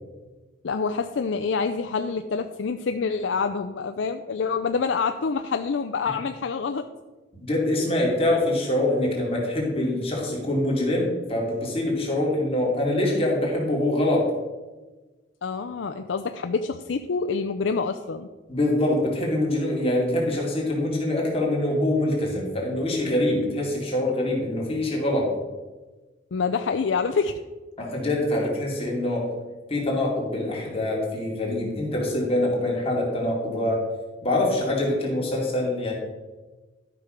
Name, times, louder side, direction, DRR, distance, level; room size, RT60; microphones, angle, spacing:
voice 1, 0.6-6.9 15.4-18.3 26.3-27.4, left 5 dB, 85° left, 7 dB, 0.5 m, -26 dB
voice 2, 7.4-14.3 18.5-25.3 27.8-29.3 29.7-33.8 34.2-35.9, left 1 dB, 35° left, -3 dB, 2.6 m, -24 dB
12.0 x 6.0 x 5.1 m, 1.2 s
head